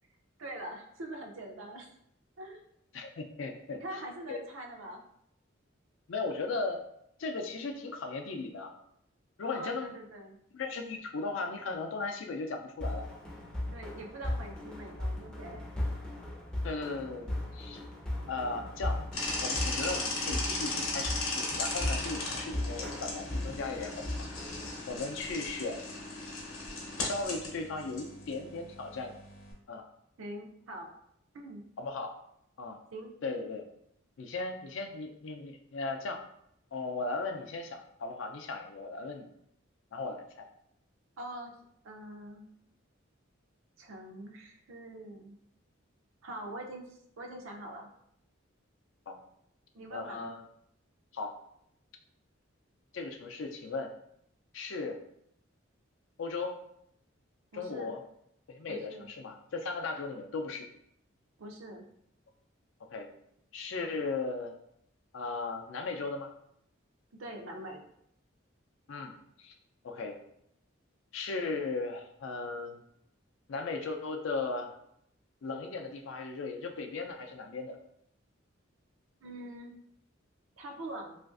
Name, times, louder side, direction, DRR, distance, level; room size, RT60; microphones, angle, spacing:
voice 1, 0.4-1.9 2.4-2.6 3.8-5.0 8.3-8.4 9.4-10.4 13.7-15.6 18.5-18.6 30.2-30.9 31.3-31.6 32.9-33.1 41.2-41.5 41.8-42.5 43.8-45.3 46.2-46.9 47.2-47.9 49.7-50.2 57.5-58.0 58.7-59.1 61.4-61.9 67.2-67.8 79.2-79.8 80.6-81.2, right 1 dB, 85° right, 2 dB, 0.5 m, -43 dB
voice 2, 2.9-3.8 4.3-4.4 6.1-6.8 7.2-8.7 9.4-9.9 10.5-13.1 16.6-17.8 18.3-19.0 19.4-24.3 24.9-25.9 27.0-29.1 29.7-29.8 31.8-32.1 32.6-32.8 33.2-33.6 34.2-36.2 36.7-39.3 39.9-40.5 49.1-49.2 49.9-50.4 51.1-51.3 52.9-53.9 54.5-55.0 56.2-56.6 57.5-58.0 58.5-60.7 62.9-63.1 63.5-64.5 65.1-66.3 68.9-69.1 69.4-69.6 69.8-70.2 71.1-72.8 73.5-74.7 75.4-77.8, left 3 dB, 70° left, 4 dB, 0.4 m, -37 dB
sound 1, 12.8-24.8, left 1 dB, 5° left, 0.4 m, -37 dB
sound 2, 19.1-29.5, left 2 dB, 90° left, 0.8 m, -37 dB
3.1 x 2.4 x 2.4 m, 0.73 s
head